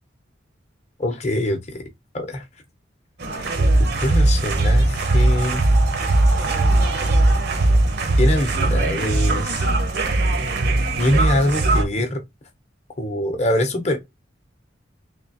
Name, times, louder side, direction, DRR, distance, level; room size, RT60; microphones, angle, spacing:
voice 1, 1.0-1.8 2.1-2.4 3.3-3.5 3.8-5.6 8.2-9.7 11.0-12.2 13.0-14.0, left 1 dB, 35° left, 0.9 m, -23 dB
sound 1, 3.2-11.8, right 2 dB, 55° right, 0.8 m, -19 dB
Breathing, 4.6-8.9, right 6 dB, 90° right, 1.9 m, -33 dB
3.7 x 2.9 x 2.7 m
head